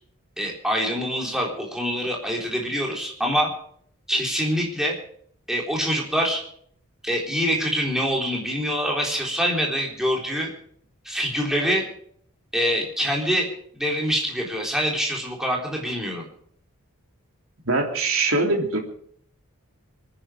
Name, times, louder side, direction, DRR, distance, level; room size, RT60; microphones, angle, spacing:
voice 1, 0.4-3.5 4.1-5.0 5.5-6.4 7.0-10.5 11.0-11.8 12.5-13.5 13.7-16.3, equal, ahead, -1 dB, 3.9 m, -25 dB
voice 2, 17.6-18.8, right 2 dB, 65° right, 1 dB, 3.4 m, -22 dB
25.5 x 10.0 x 5.1 m, 0.62 s
head